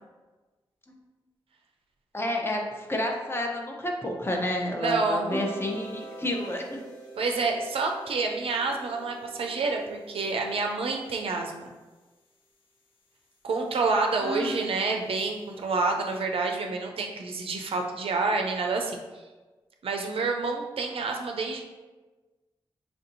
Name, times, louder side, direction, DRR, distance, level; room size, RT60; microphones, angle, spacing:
voice 1, 2.1-6.6 14.1-14.6, left 1 dB, 25° left, 1 dB, 0.7 m, -30 dB
voice 2, 4.8-5.4 7.2-11.7 13.4-19.0 19.8-21.6, right 3 dB, 70° right, 2 dB, 0.5 m, -28 dB
sound 1, 5.3-11.4, right 1 dB, 55° left, 1.0 m, -42 dB
4.4 x 2.6 x 2.7 m, 1.2 s
supercardioid pair, 40°, 10 cm